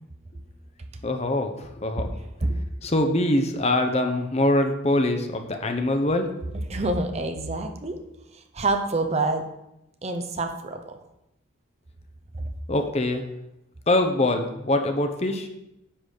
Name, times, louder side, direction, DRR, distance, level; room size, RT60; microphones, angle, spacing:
voice 1, 1.0-2.1 2.8-6.3 12.7-13.2 13.9-15.5, left 1 dB, 30° left, 5 dB, 0.8 m, -23 dB
voice 2, 6.7-8.0 8.6-9.4 10.0-10.8, right 2 dB, 30° right, 6 dB, 0.8 m, -26 dB
10.0 x 4.0 x 6.5 m, 0.86 s
head